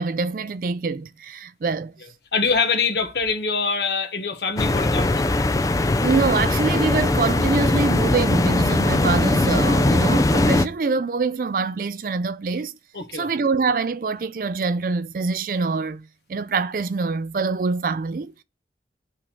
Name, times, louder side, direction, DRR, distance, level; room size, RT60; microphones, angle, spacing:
voice 1, 0.0-1.9 6.0-12.8 13.1-18.4, right 4 dB, 50° right, 0.4 m, -25 dB
voice 2, 2.3-5.2 12.9-13.3, left 5 dB, 70° left, 1.2 m, -24 dB
sound 1, 4.6-10.7, left 2 dB, 20° left, 0.3 m, -20 dB
10.0 x 3.6 x 4.4 m
head